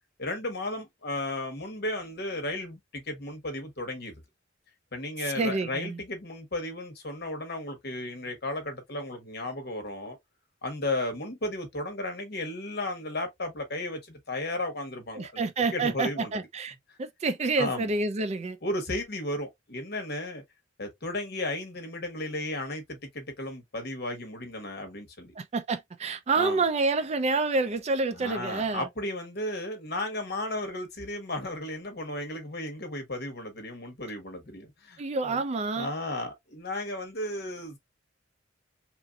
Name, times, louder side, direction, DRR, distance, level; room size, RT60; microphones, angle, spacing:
voice 1, 0.2-4.2 4.9-10.2 10.6-15.5 15.7-16.3 17.6-17.9 18.6-20.4 20.8-25.3 26.4-26.6 28.2-35.4 35.8-37.8, left 1 dB, 55° left, 1.1 m, -34 dB
voice 2, 5.2-6.0 15.1-18.6 25.4-28.9 35.0-35.9, right 3 dB, 35° right, 0.4 m, -28 dB
3.0 x 2.5 x 2.3 m
head